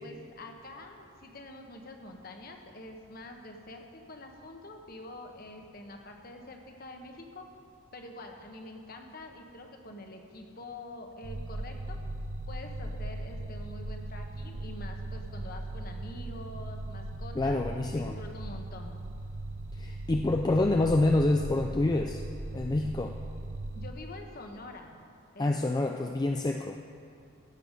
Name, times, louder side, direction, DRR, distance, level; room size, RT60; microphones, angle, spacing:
voice 1, 0.0-7.5 7.9-12.0 12.5-17.6 17.9-18.9 23.7-25.0 25.3-25.5, left 2 dB, 45° left, 3 dB, 1.1 m, -46 dB
sound 1, 11.2-23.9, right 1 dB, 70° right, 0.9 m, -39 dB
voice 2, 17.4-18.2 19.7-22.2 22.5-23.2 25.4-26.8, left 2 dB, 20° left, 3 dB, 0.3 m, -27 dB
16.0 x 6.7 x 5.3 m, 2.7 s
head